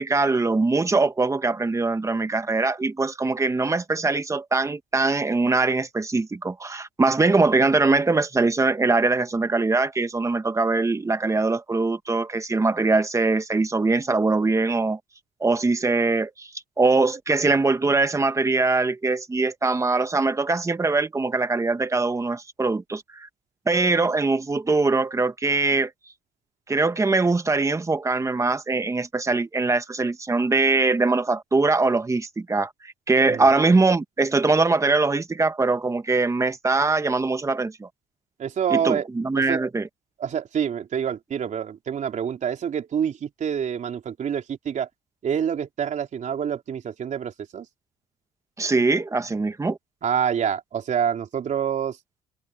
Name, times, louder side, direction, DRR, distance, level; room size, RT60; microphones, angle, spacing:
voice 1, 0.0-15.0 15.4-16.5 16.8-23.3 23.6-25.9 26.7-37.9 38.7-39.8 48.6-49.8, right 3 dB, 20° right, 1.6 m, -22 dB
voice 2, 38.4-39.1 39.4-39.6 40.2-44.9 45.2-47.7 50.0-52.0, right 8 dB, 45° right, 3.8 m, -27 dB
cardioid pair, 110°, 17 cm